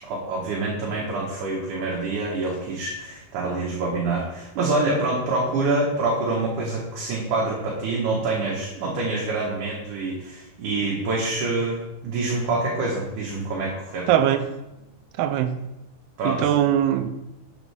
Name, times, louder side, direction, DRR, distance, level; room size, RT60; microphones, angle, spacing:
voice 1, 0.0-14.1 16.2-16.5, right 3 dB, 60° right, -3 dB, 2.5 m, -26 dB
voice 2, 14.1-14.5 15.2-15.6 16.2-17.1, right 10 dB, 80° right, 10 dB, 2.5 m, -21 dB
11.0 x 7.3 x 3.5 m, 0.93 s
omnidirectional pair, 4.6 m